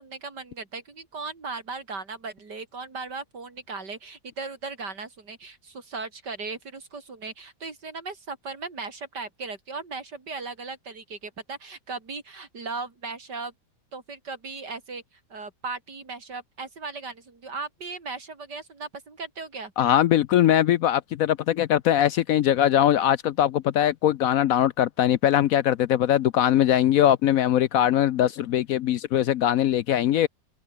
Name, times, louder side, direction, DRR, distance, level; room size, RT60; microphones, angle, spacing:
voice 1, 0.0-13.5 13.9-15.0 15.3-19.7, right 4 dB, 80° right, 4.2 m, -37 dB
voice 2, 19.8-30.3, left 11 dB, 65° left, 0.9 m, -21 dB
omnidirectional pair, 1.8 m